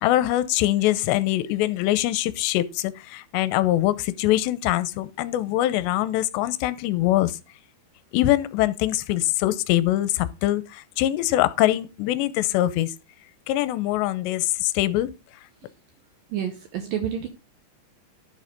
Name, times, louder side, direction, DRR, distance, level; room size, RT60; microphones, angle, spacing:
voice 1, 0.0-7.4 8.1-12.9 13.5-15.1, left 15 dB, 80° left, 2.8 m, -23 dB
voice 2, 16.3-17.3, right 9 dB, 70° right, 2.2 m, -29 dB
10.0 x 6.4 x 5.2 m
omnidirectional pair, 5.1 m